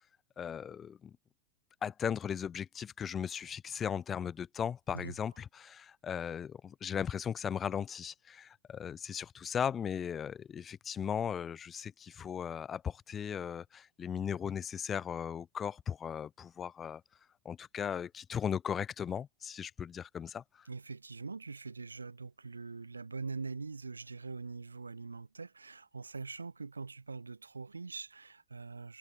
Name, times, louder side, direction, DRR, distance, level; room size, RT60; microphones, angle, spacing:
voice 1, 0.4-1.1 1.8-17.0 17.4-20.7, left 8 dB, 25° left, 2.2 m, -37 dB
voice 2, 20.6-29.0, right 4 dB, 80° right, 5.0 m, -43 dB
figure-of-eight pair, 90°, 0 cm